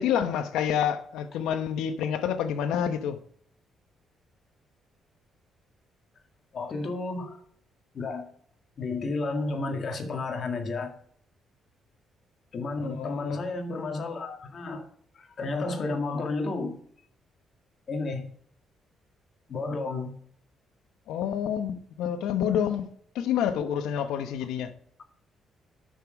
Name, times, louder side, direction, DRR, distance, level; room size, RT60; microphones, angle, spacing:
voice 1, 0.0-3.2 12.8-13.5 21.1-22.9 23.1-24.7, left 9 dB, 90° left, 0.9 m, -28 dB
voice 2, 6.5-7.4 7.9-8.3 8.8-11.0 12.5-14.9 15.1-16.8 17.9-18.3 19.5-20.1, left 3 dB, 50° left, 2.0 m, -32 dB
10.5 x 6.5 x 5.1 m
cardioid pair, 90°, 0 cm